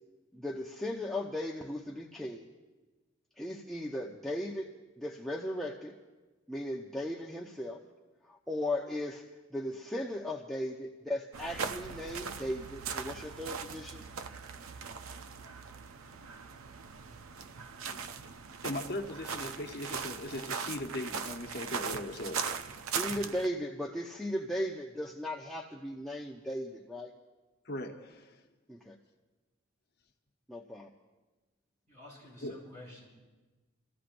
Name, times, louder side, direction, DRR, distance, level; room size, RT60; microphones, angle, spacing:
voice 1, 0.3-2.5 3.4-4.7 5.0-5.9 6.5-7.8 8.3-9.2 9.5-14.0 22.9-27.1 28.7-29.0 30.5-30.9, left 1 dB, ahead, -3 dB, 0.6 m, -37 dB
sound 1, 11.3-23.5, right 6 dB, 80° right, 0.6 m, -39 dB
voice 2, 18.6-22.6 27.6-28.4 32.4-32.5, left 1 dB, 50° left, 3 dB, 0.9 m, -39 dB
voice 3, 31.9-33.1, left 1 dB, 40° right, -4 dB, 5.7 m, -50 dB
28.5 x 14.5 x 2.6 m, 1.2 s
head